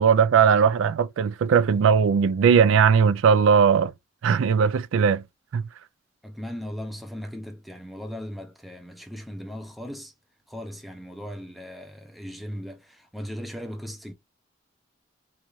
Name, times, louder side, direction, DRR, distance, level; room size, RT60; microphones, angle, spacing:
voice 1, 0.0-3.9 4.2-5.2 5.5-5.6, right 6 dB, 85° right, 0.3 m, -19 dB
voice 2, 6.2-10.1 10.5-14.1, equal, ahead, 0.4 m, -37 dB
3.8 x 2.4 x 3.0 m
head